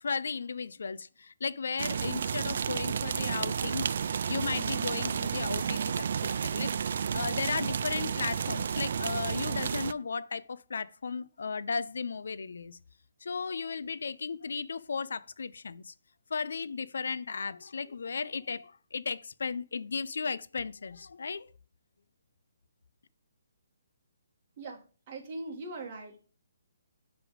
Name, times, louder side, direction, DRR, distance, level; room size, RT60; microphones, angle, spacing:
voice 1, 0.0-12.8 13.2-15.9 16.3-21.5, left 5 dB, 75° left, 0.4 m, -35 dB
Ben Shewmaker - Light Rain Outside Apartment, 1.8-9.9, right 7 dB, 55° right, 0.3 m, -31 dB
voice 2, 24.6-26.2, right 2 dB, 30° right, 1.9 m, -41 dB
9.9 x 3.4 x 5.0 m
hypercardioid pair, 165°, 0 cm